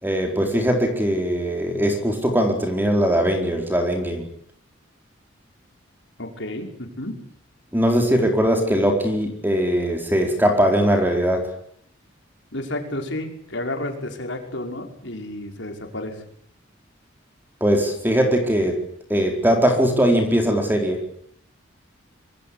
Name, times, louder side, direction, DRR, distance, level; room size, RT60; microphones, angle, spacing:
voice 1, 0.0-4.3 7.7-11.5 17.6-18.8 19.1-21.1, equal, 10° right, 4.4 m, -20 dB
voice 2, 6.2-7.2 12.5-16.2, left 1 dB, 60° left, 5.9 m, -31 dB
26.5 x 23.0 x 8.4 m
head